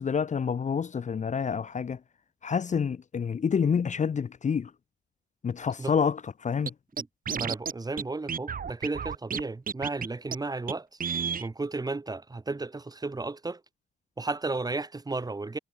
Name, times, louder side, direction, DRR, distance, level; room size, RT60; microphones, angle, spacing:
voice 1, 0.0-2.0 2.4-4.7 5.4-6.7, left 6 dB, 35° left, 1.0 m, -28 dB
Scratching (performance technique), 6.7-6.8 7.0-7.7 8.0-8.1 8.3-9.4 9.7-10.1 10.3-10.4 10.7-10.8 11.0-11.5, right 7 dB, 45° right, 3.2 m, -31 dB
voice 2, 7.3-10.9 11.4-13.6 14.2-15.6, right 3 dB, 20° right, 2.0 m, -33 dB
cardioid pair, 90°, 20 cm